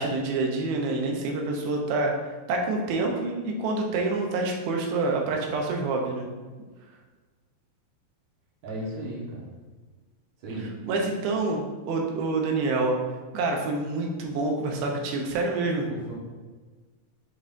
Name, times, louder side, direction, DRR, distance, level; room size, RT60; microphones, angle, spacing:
voice 1, 0.0-2.1 2.5-6.3 10.8-13.0 13.3-15.9, right 3 dB, 80° right, 1 dB, 2.7 m, -27 dB
voice 2, 8.6-9.5 10.4-10.7 15.9-16.1, right 1 dB, 60° right, -5 dB, 2.6 m, -35 dB
6.9 x 5.3 x 2.6 m, 1.3 s
omnidirectional pair, 4.3 m